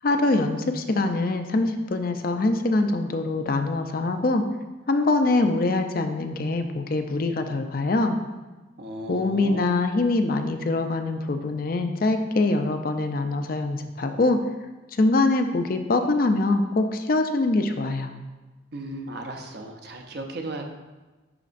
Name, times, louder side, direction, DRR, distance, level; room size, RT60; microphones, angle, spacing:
voice 1, 0.0-4.4 4.9-8.2 9.1-14.4 14.9-18.1, left 2 dB, 45° left, 6 dB, 0.4 m, -23 dB
voice 2, 8.8-9.7 18.7-20.6, right 1 dB, 55° right, 3 dB, 0.7 m, -35 dB
11.0 x 4.1 x 2.5 m, 1.2 s
head